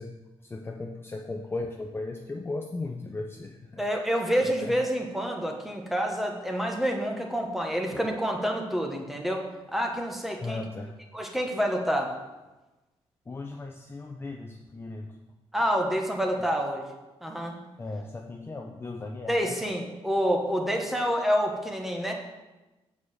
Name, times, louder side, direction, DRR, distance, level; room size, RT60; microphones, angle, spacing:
voice 1, 0.0-4.1 4.4-4.8 7.9-8.0 10.4-11.0 13.3-15.2 17.8-19.5, left 3 dB, 20° left, 2 dB, 0.6 m, -37 dB
voice 2, 3.8-10.6 11.1-12.1 15.5-16.9 17.2-17.6 19.3-22.1, equal, ahead, 1 dB, 1.3 m, -28 dB
8.5 x 4.8 x 7.3 m, 1.1 s
wide cardioid pair, 145°, 11 cm